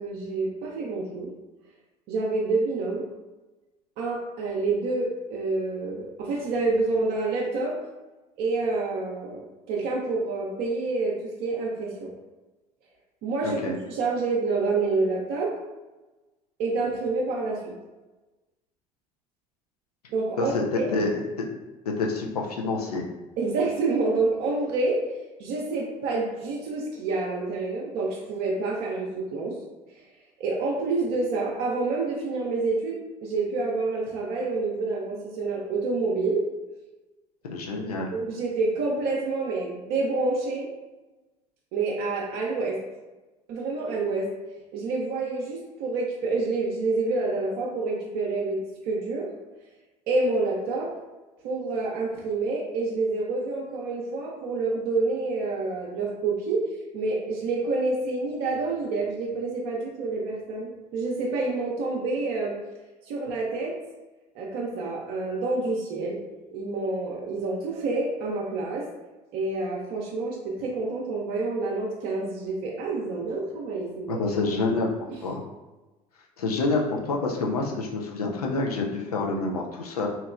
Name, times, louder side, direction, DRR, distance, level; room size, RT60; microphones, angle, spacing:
voice 1, 0.0-1.3 2.1-3.0 4.0-7.7 8.4-12.1 13.2-15.5 16.6-17.7 20.1-21.0 23.4-25.0 25.4-29.6 29.9-30.0 30.4-36.4 38.1-40.7 41.7-42.8 43.5-44.3 44.7-49.3 50.1-50.9 51.4-56.6 56.9-62.5 63.1-63.7 64.3-66.2 66.5-68.8 69.3-74.2 75.1-75.2, right 3 dB, 60° right, -2 dB, 0.6 m, -28 dB
voice 2, 13.4-13.8 20.4-20.6 20.9-21.5 21.9-23.1 37.4-38.1 74.1-74.9 75.2-75.4 76.4-80.1, left 3 dB, 85° left, 0 dB, 0.5 m, -27 dB
2.9 x 2.9 x 2.4 m, 1.1 s
hypercardioid pair, 60°, 19 cm